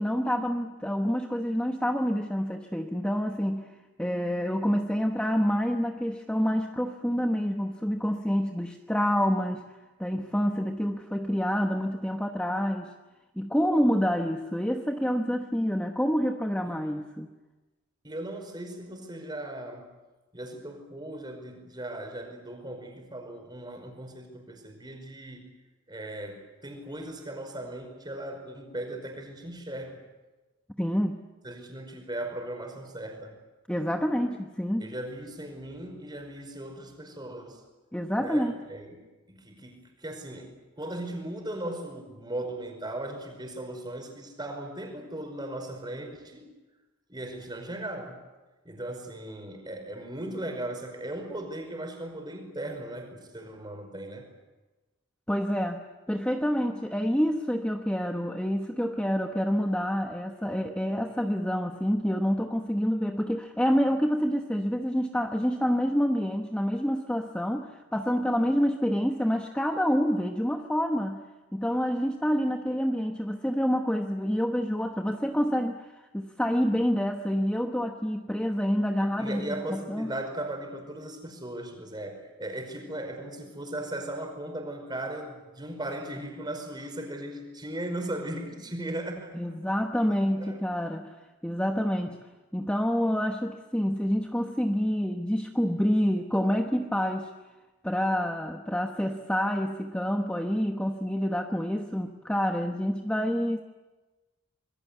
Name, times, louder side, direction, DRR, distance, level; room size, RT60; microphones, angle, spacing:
voice 1, 0.0-3.7 4.0-9.6 10.0-12.9 13.4-17.3 30.8-31.2 33.7-34.9 37.9-38.5 55.3-55.8 56.1-71.2 71.5-75.8 76.1-80.1 89.3-91.1 91.4-92.2 92.5-97.3 97.8-103.6, equal, 5° left, 3 dB, 1.1 m, -27 dB
voice 2, 18.0-19.9 20.3-25.5 25.9-30.0 31.4-33.3 34.8-37.6 38.2-39.0 39.4-46.4 47.1-48.2 48.6-54.2 79.0-89.3 90.4-90.8, right 1 dB, 20° right, 4 dB, 5.1 m, -37 dB
26.5 x 21.5 x 8.3 m, 1.2 s
head